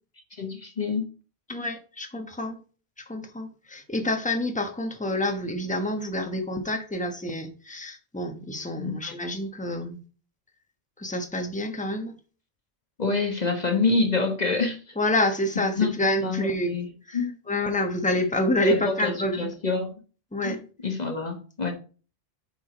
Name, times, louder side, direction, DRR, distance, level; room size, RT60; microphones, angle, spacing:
voice 1, 0.4-1.1 8.8-9.1 13.0-14.9 15.8-15.9 16.2-16.9 17.1-17.3 18.6-19.9 20.4-20.6 20.8-21.7, left 4 dB, 45° left, 4 dB, 1.3 m, -26 dB
voice 2, 1.5-2.6 3.1-10.0 11.0-12.1 15.0-16.7 17.1-17.2 17.5-19.5 20.3-20.6, left 1 dB, 10° left, 5 dB, 1.1 m, -28 dB
8.1 x 5.0 x 5.0 m, 0.37 s
omnidirectional pair, 1.0 m